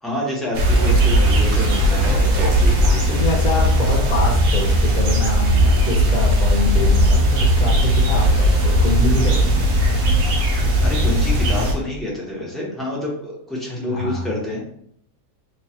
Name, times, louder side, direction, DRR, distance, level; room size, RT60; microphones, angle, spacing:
voice 1, 0.0-3.5 10.8-14.7, left 1 dB, ahead, -5 dB, 0.5 m, -28 dB
sound 1, 0.5-11.7, equal, 60° right, 1.1 m, -17 dB
voice 2, 3.1-10.0 13.9-14.3, left 2 dB, 35° left, -1 dB, 0.7 m, -25 dB
3.1 x 2.3 x 4.2 m, 0.65 s
omnidirectional pair, 1.8 m